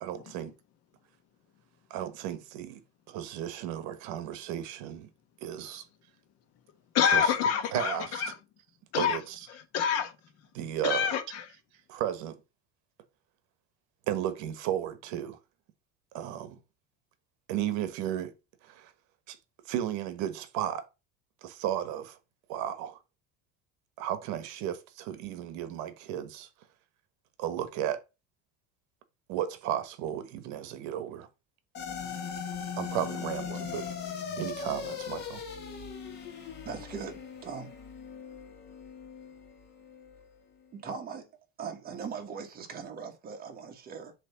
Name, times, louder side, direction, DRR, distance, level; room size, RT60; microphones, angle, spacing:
voice 1, 0.0-0.5 1.9-2.8 3.1-5.1 5.4-5.8 7.0-7.3 7.7-8.2 9.0-9.4 10.5-11.1 11.9-12.4 14.1-15.4 16.1-16.6 17.5-18.3 18.6-18.9 19.3-19.4 19.6-20.8 21.4-22.2 22.5-23.0 24.0-26.5 27.4-28.0 29.3-31.3 32.8-33.8 34.4-35.4, right 11 dB, 60° right, 1.2 m, -34 dB
voice 2, 6.9-8.3 8.9-9.2 9.5-10.1 10.8-11.5, left 7 dB, 50° left, 1.2 m, -27 dB
sound 1, 31.7-40.3, left 7 dB, 30° left, 1.6 m, -39 dB
voice 3, 36.6-37.7 40.7-41.3 41.6-44.1, right 6 dB, 30° right, 1.4 m, -40 dB
7.3 x 3.1 x 5.7 m
cardioid pair, 160°, 32 cm